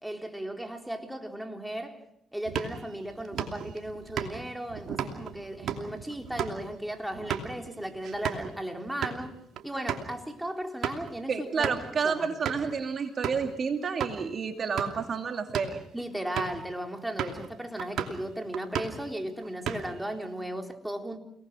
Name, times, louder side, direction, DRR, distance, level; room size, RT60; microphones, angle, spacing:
voice 1, 0.0-2.0 2.3-9.4 9.6-11.7 12.0-12.3 15.9-21.2, right 1 dB, 5° right, 4.0 m, -36 dB
sound 1, 2.4-8.5 8.9-9.2 9.6-9.7 9.9-10.1 10.6-11.1 11.6-11.9 12.4-12.7 13.2-13.5 14.0-14.2 14.6-15.1 15.4-15.8 16.4-16.6 17.2-17.5 17.8-18.2 18.5-19.1 19.4-20.1, right 8 dB, 70° right, 2.8 m, -34 dB
voice 2, 11.3-15.8, right 5 dB, 50° right, 2.5 m, -30 dB
29.5 x 19.5 x 6.3 m
supercardioid pair, 55°, 0 cm